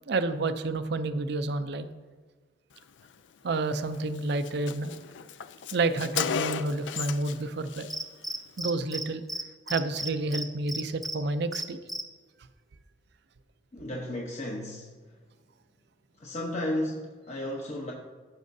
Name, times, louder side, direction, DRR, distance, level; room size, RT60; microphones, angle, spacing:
voice 1, 0.1-1.9 3.4-4.9 5.7-7.9 8.6-9.2 9.7-11.8, right 3 dB, 65° right, 10 dB, 0.5 m, -29 dB
Car, 3.7-3.9 4.2-4.3 4.4-7.4 7.7-7.9, left 8 dB, 70° left, 0.4 m, -34 dB
Cricket, 7.9-9.0 9.3-9.4 9.7-11.2 11.5-12.0, right 1 dB, ahead, 0.5 m, -33 dB
voice 2, 13.7-15.2 16.2-17.9, left 1 dB, 40° left, -2 dB, 0.9 m, -34 dB
14.5 x 6.3 x 2.7 m, 1.4 s
head